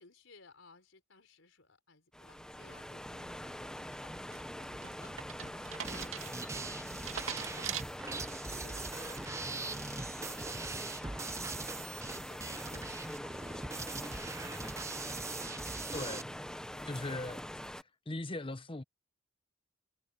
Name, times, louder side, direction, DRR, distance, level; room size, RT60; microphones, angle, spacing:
voice 1, 0.0-10.0 10.2-11.5 12.0-14.4, left 3 dB, 80° left, 4.3 m, -61 dB
sound 1, 2.1-17.8, equal, 5° left, 1.1 m, -44 dB
sound 2, 4.3-8.5 9.0-9.4, right 8 dB, 85° right, 2.4 m, -42 dB
sound 3, 5.8-16.2, right 3 dB, 15° right, 0.6 m, -42 dB
voice 2, 15.9-16.3 16.8-17.4 18.1-18.8, left 2 dB, 25° left, 1.0 m, -39 dB
head